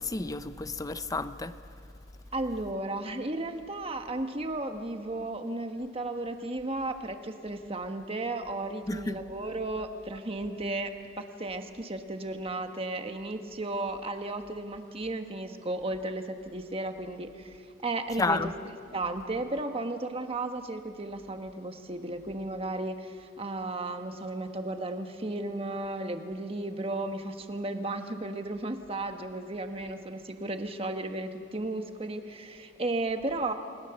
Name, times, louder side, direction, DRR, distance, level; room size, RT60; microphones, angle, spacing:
voice 1, 0.0-1.5 8.9-9.2 18.2-18.5, left 3 dB, 20° left, 0.6 m, -31 dB
voice 2, 2.3-10.9 11.2-18.5 18.9-33.5, right 2 dB, 30° right, 1.3 m, -34 dB
29.0 x 22.0 x 7.0 m
head